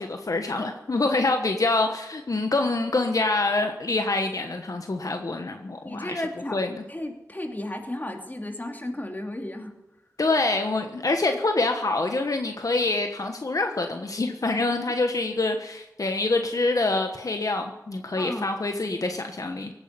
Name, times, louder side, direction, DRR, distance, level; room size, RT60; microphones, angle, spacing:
voice 1, 0.0-6.2 6.5-6.8 10.2-19.7, left 2 dB, 65° left, 5 dB, 1.3 m, -26 dB
voice 2, 5.8-6.6 6.9-9.7 14.7-15.0 18.2-18.5, left 1 dB, 30° left, 3 dB, 2.6 m, -34 dB
17.5 x 9.6 x 6.8 m, 0.97 s
wide cardioid pair, 55°, 6 cm